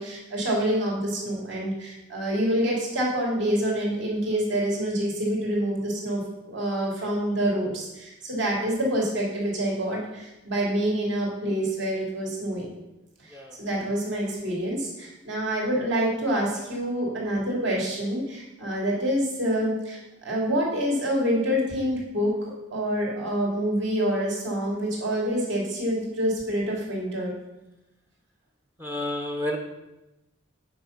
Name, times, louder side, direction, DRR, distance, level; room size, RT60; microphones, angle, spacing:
voice 1, 0.0-6.2 6.5-12.8 13.2-13.3 13.6-22.3 22.7-27.3, equal, 60° right, -3 dB, 2.7 m, -27 dB
voice 2, 28.8-29.6, left 1 dB, 10° right, 2 dB, 0.8 m, -30 dB
8.4 x 5.5 x 5.7 m, 0.98 s
head